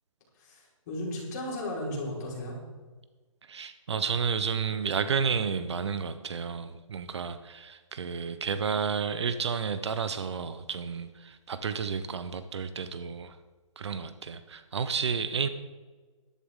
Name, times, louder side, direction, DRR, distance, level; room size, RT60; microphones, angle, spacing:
voice 1, 0.4-2.6, left 1 dB, 30° left, -4 dB, 4.7 m, -35 dB
voice 2, 3.4-13.4 13.8-15.5, right 6 dB, 55° right, 11 dB, 0.9 m, -31 dB
13.0 x 12.0 x 3.8 m, 1.3 s
hypercardioid pair, 160°, 17 cm